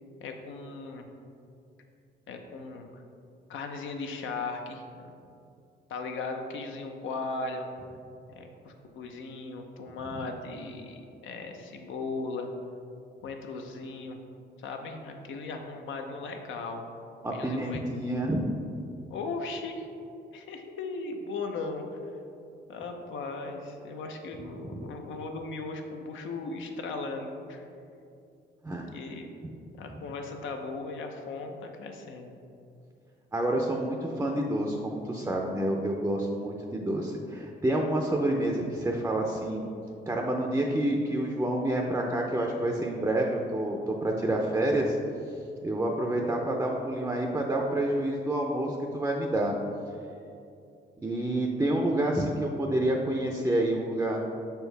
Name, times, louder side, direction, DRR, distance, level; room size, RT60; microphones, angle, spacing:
voice 1, 0.2-1.0 2.3-3.0 3.5-5.2 5.9-7.7 8.3-12.5 13.2-14.2 14.6-16.8 17.3-17.8 19.1-19.9 20.3-21.8 22.7-27.6 28.9-29.3 29.7-32.3, left 3 dB, 75° left, 4 dB, 0.7 m, -37 dB
voice 2, 17.2-18.5 24.7-24.8 28.6-28.9 33.3-39.7 40.1-45.0 45.6-49.5 51.0-54.2, right 1 dB, 10° right, 1 dB, 0.5 m, -28 dB
6.3 x 4.5 x 3.3 m, 2.6 s
cardioid pair, 90°, 20 cm